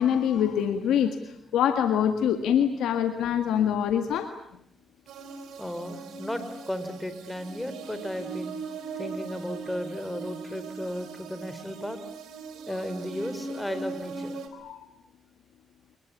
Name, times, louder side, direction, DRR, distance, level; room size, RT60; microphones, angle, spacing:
voice 1, 0.0-4.3 14.5-14.9, left 9 dB, 85° left, 7 dB, 1.8 m, -25 dB
sound 1, 5.1-14.5, right 4 dB, 85° right, 4.1 m, -39 dB
voice 2, 5.6-8.5 9.0-12.0 12.7-14.4, left 1 dB, 10° left, 10 dB, 4.6 m, -35 dB
29.5 x 21.0 x 8.6 m, 0.76 s
cardioid pair, 70°, 0 cm